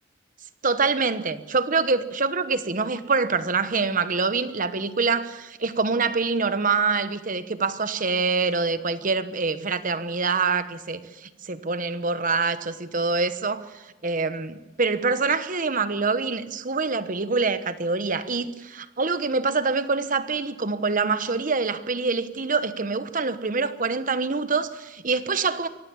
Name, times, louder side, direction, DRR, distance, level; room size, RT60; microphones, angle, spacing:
voice 1, 0.6-25.7, right 4 dB, 45° right, 1.1 m, -25 dB
24.0 x 17.5 x 7.1 m
head